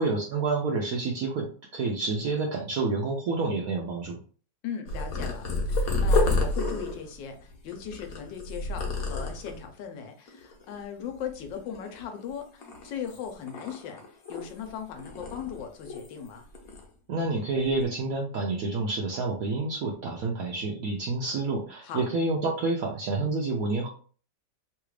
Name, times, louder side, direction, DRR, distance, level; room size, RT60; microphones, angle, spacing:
voice 1, 0.0-4.2 17.1-23.9, right 3 dB, 70° right, 0 dB, 0.9 m, -28 dB
voice 2, 4.6-16.5 21.8-22.0, left 7 dB, 75° left, 5 dB, 1.3 m, -38 dB
Purr, 4.9-9.7 10.3-10.7 11.0-12.2 12.6-14.7 15.0-16.3 16.5-16.8 17.5-17.8, left 2 dB, 60° left, 1.1 m, -30 dB
3.3 x 2.4 x 3.1 m, 0.41 s
omnidirectional pair, 2.0 m